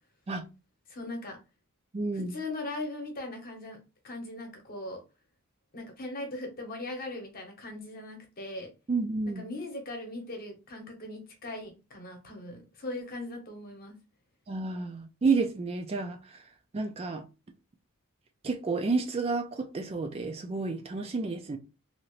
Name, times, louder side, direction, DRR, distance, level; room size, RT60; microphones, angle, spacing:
voice 1, 0.9-1.4 2.1-3.8 4.0-5.0 5.7-8.7 9.3-14.0, left 2 dB, 45° left, 0.9 m, -39 dB
voice 2, 1.9-2.3 8.9-9.4 14.5-16.4 16.7-17.2 18.4-21.6, right 4 dB, 30° right, 0.3 m, -30 dB
2.8 x 2.5 x 3.1 m
head